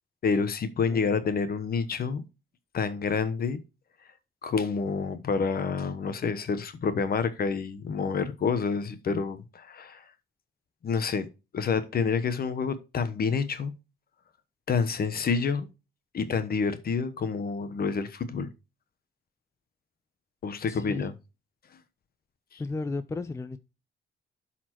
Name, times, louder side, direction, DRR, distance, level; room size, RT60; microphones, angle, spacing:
voice 1, 0.2-2.2 2.7-3.6 4.4-10.0 10.8-11.3 11.5-13.7 14.7-15.7 16.1-18.5 20.4-21.1 22.5-22.6, left 5 dB, 50° left, 1.0 m, -28 dB
voice 2, 20.7-21.1 22.6-23.6, left 3 dB, 15° left, 0.5 m, -34 dB
12.0 x 4.2 x 3.0 m
cardioid pair, 90°, 20 cm